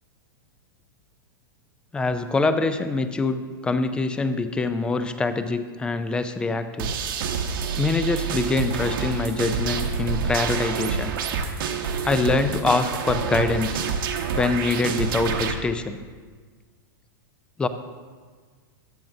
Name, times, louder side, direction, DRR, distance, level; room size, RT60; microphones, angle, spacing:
voice 1, 1.9-6.9 7.8-11.1 12.0-13.8 14.4-16.0 17.6-17.7, left 3 dB, 10° left, 10 dB, 0.3 m, -24 dB
sound 1, 6.8-15.5, right 6 dB, 70° right, 1.0 m, -27 dB
13.5 x 8.8 x 2.7 m, 1.5 s
supercardioid pair, 150°, 12 cm